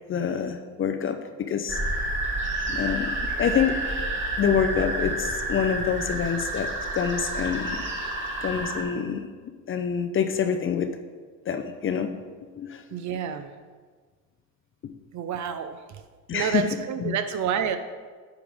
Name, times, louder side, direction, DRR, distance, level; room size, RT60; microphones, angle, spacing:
voice 1, 0.1-1.8 2.7-3.1 3.4-3.8 4.4-7.8 8.4-9.2 9.7-10.9 11.5-12.1 12.6-12.8 14.8-14.9 16.3-16.6 17.0-17.2, left 7 dB, 30° left, 7 dB, 0.5 m, -26 dB
sound 1, 1.7-8.8, right 2 dB, 25° right, 2.1 m, -29 dB
voice 2, 12.9-13.5 15.1-16.0 16.3-17.8, right 8 dB, 40° right, 10 dB, 0.6 m, -29 dB
9.0 x 4.8 x 3.5 m, 1.5 s
hypercardioid pair, 75°, 45 cm